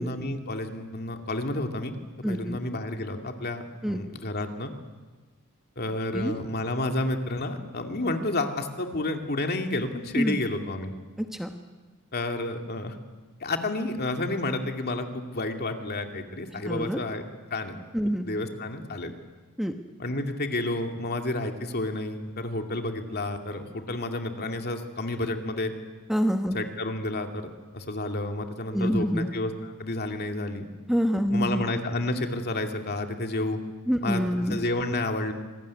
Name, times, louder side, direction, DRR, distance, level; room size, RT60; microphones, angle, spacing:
voice 1, 0.0-1.9 2.3-4.7 5.8-11.0 12.1-13.0 13.4-17.2 17.5-17.8 18.2-19.1 20.0-25.7 26.5-30.7 31.3-33.6 34.0-35.3, left 2 dB, 45° left, 4 dB, 2.5 m, -30 dB
voice 2, 2.2-2.6 3.8-4.0 6.1-6.4 10.1-10.4 11.2-11.5 16.6-17.0 17.9-18.3 19.6-19.7 26.1-26.6 28.7-29.3 30.9-31.6 33.9-34.6, equal, ahead, 5 dB, 1.1 m, -26 dB
26.0 x 20.0 x 9.7 m, 1.3 s
head